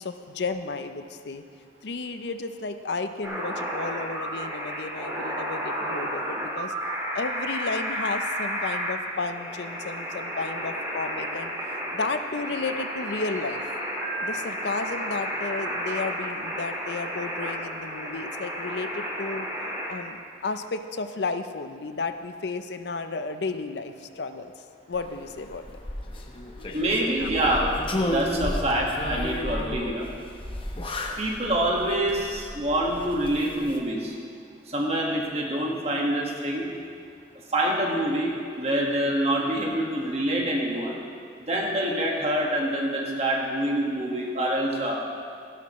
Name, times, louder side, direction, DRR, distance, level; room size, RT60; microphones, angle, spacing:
voice 1, 0.0-1.4 1.8-6.7 7.1-11.5 11.9-13.6 14.2-19.5 19.9-24.5 24.9-25.7 26.6-26.8 27.2-27.3, left 3 dB, 65° left, 8 dB, 0.6 m, -33 dB
sound 1, 3.2-19.9, equal, 15° right, 2.0 m, -32 dB
sound 2, 24.9-33.8, left 1 dB, 30° left, 0.9 m, -33 dB
voice 2, 26.7-27.7 28.0-30.1 31.2-34.2 34.7-36.7 37.5-41.0 41.4-45.0, right 1 dB, 35° right, -1 dB, 1.7 m, -26 dB
16.0 x 12.0 x 3.1 m, 2.3 s
head